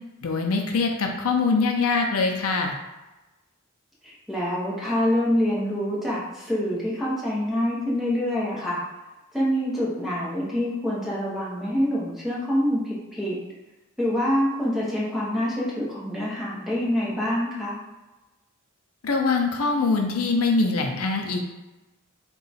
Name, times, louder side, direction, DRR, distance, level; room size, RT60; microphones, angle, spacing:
voice 1, 0.2-2.8 19.0-21.4, left 4 dB, 75° left, 2 dB, 0.5 m, -23 dB
voice 2, 4.0-8.8 9.3-13.4 14.0-17.8, equal, ahead, -7 dB, 1.0 m, -26 dB
3.8 x 2.4 x 4.0 m, 1.1 s
head